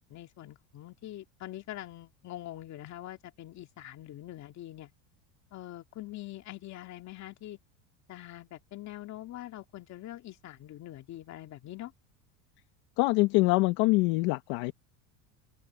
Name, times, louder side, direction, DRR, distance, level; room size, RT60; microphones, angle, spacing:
voice 1, 0.1-4.9 5.5-7.6 8.1-11.9, left 14 dB, 45° left, 2.4 m, -44 dB
voice 2, 13.0-14.7, left 23 dB, 65° left, 1.5 m, -24 dB
open air
supercardioid pair, 135°, 40 cm